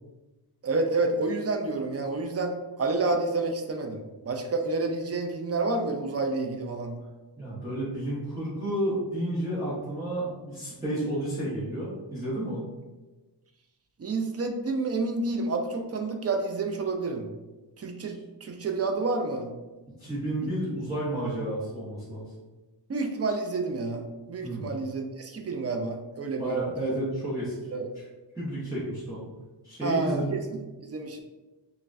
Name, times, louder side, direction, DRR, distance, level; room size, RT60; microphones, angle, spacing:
voice 1, 0.6-7.0 14.0-17.3 17.8-19.5 22.9-26.5 26.8-26.9 27.7-27.8 29.8-30.4 30.8-31.2, right 3 dB, 35° right, 3 dB, 0.5 m, -29 dB
voice 2, 7.4-12.7 18.1-18.2 19.9-22.3 24.4-24.7 26.4-27.5 28.3-29.3 29.6-30.5, right 1 dB, 10° right, -10 dB, 0.9 m, -31 dB
5.5 x 2.2 x 2.5 m, 1.2 s
wide cardioid pair, 130°, 43 cm